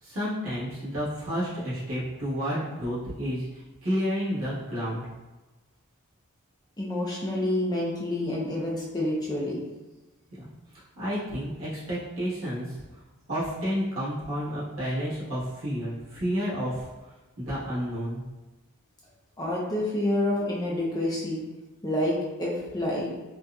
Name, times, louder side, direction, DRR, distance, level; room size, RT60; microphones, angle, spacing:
voice 1, 0.0-5.0 10.3-10.5 11.0-12.8 13.3-16.9 17.4-18.2, equal, 65° right, -10 dB, 1.4 m, -30 dB
voice 2, 6.8-9.6 19.4-21.4 21.8-23.1, left 1 dB, 20° left, -5 dB, 0.5 m, -28 dB
4.0 x 2.4 x 2.3 m, 1.1 s
head